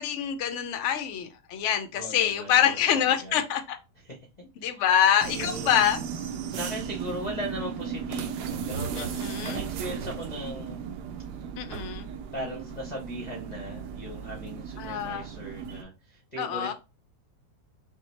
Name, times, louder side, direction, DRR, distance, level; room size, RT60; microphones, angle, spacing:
voice 1, 0.0-3.8 4.6-6.0 9.0-9.6 11.6-12.1 14.8-15.3 16.4-16.7, left 9 dB, 80° left, 8 dB, 0.6 m, -25 dB
voice 2, 1.9-2.8 3.2-3.4 4.0-4.2 4.6-4.8 5.3-5.8 6.5-9.1 9.4-10.8 12.3-16.7, equal, 40° left, 0 dB, 0.6 m, -38 dB
sound 1, 5.2-15.8, right 7 dB, 70° right, 1.1 m, -36 dB
5.6 x 2.2 x 3.2 m, 0.28 s
omnidirectional pair, 2.0 m